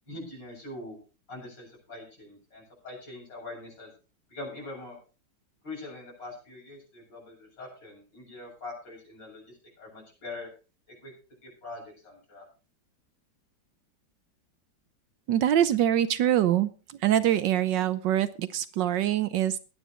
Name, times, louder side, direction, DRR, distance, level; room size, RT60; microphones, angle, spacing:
voice 1, 0.1-1.0 1.3-3.9 4.3-5.0 5.6-10.5 11.0-11.1 11.4-12.5, left 2 dB, 65° left, -2 dB, 8.8 m, -43 dB
voice 2, 15.3-16.7 17.0-19.6, right 11 dB, 70° right, 13 dB, 1.4 m, -24 dB
21.5 x 9.0 x 3.1 m, 0.35 s
omnidirectional pair, 2.1 m